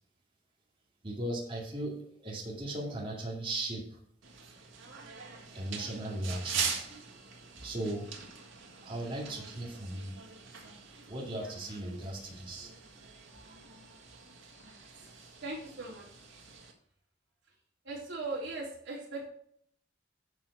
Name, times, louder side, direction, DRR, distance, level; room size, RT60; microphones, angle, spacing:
voice 1, 1.0-4.0 5.5-7.0 7.6-8.1 8.8-10.2 10.9-12.7, right 1 dB, 25° right, -2 dB, 2.2 m, -37 dB
sound 1, 4.2-16.7, right 6 dB, 90° right, 1.8 m, -43 dB
voice 2, 15.4-16.1 17.8-19.3, right 2 dB, 65° right, -6 dB, 3.7 m, -39 dB
11.0 x 4.7 x 6.0 m, 0.64 s
head